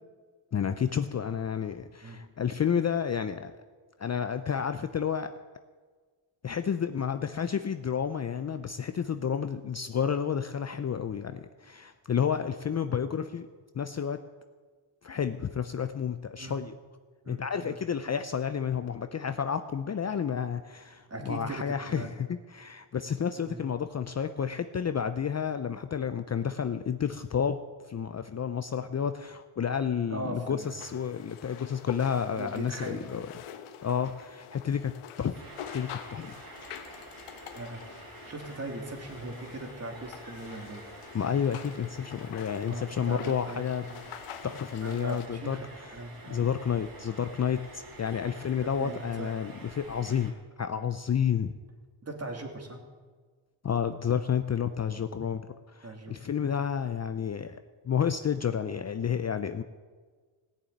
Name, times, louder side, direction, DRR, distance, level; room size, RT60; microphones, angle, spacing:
voice 1, 0.5-3.5 4.0-5.3 6.4-13.5 13.7-14.2 15.0-16.7 17.3-27.6 27.9-33.3 33.8-34.9 35.2-35.4 35.7-36.3 41.1-43.9 44.4-45.9 46.3-50.3 50.6-51.5 53.6-55.5 55.7-57.6 57.8-59.6, left 7 dB, 35° left, 9 dB, 0.6 m, -30 dB
voice 2, 17.2-17.7 21.1-22.1 23.5-23.6 30.1-30.7 32.4-33.0 37.5-37.8 38.3-40.8 42.6-44.1 44.8-45.7 45.9-46.4 48.8-49.4 52.0-52.8 55.8-56.1 56.4-56.6, right 2 dB, 30° right, 2 dB, 2.8 m, -39 dB
sound 1, 30.6-45.3, left 9 dB, 90° left, 1.1 m, -47 dB
sound 2, 35.3-50.3, right 2 dB, 45° right, 3.6 m, -49 dB
17.0 x 7.2 x 9.2 m, 1.5 s
cardioid pair, 90°, 49 cm